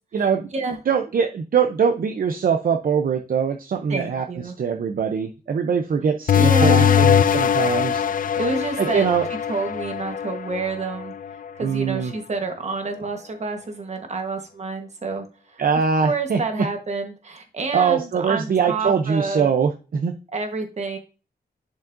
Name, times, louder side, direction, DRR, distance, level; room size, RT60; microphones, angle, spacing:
voice 1, 0.1-0.5 0.9-4.2 4.6-8.0 8.8-9.3 11.6-12.1 15.6-16.7 17.7-20.1, right 6 dB, 60° right, 5 dB, 0.6 m, -22 dB
voice 2, 3.9-4.5 6.3-7.1 8.4-11.1 11.5-15.6 16.0-19.5 20.3-21.0, right 3 dB, 40° right, 5 dB, 1.3 m, -28 dB
sound 1, 6.3-11.5, left 8 dB, 55° left, 0.4 m, -21 dB
10.5 x 5.2 x 2.6 m, 0.33 s
wide cardioid pair, 165°, 17 cm